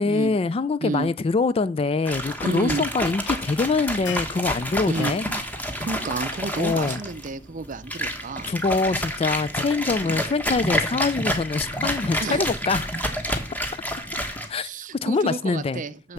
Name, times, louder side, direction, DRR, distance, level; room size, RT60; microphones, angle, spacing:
voice 1, 0.0-5.3 6.6-7.0 8.4-12.9 14.5-14.7 15.0-15.8, left 4 dB, 30° left, 0.3 m, -24 dB
sound 1, 2.1-14.5, equal, 10° left, 1.3 m, -29 dB
voice 2, 2.4-2.9 4.9-5.1 5.8-8.5 10.0-10.2 12.2-12.5 14.6-16.1, right 3 dB, 45° right, 0.6 m, -31 dB
sound 2, 4.1-4.4 4.9-5.2 6.9-7.0, left 9 dB, 65° left, 0.8 m, -38 dB
7.6 x 6.6 x 7.1 m
head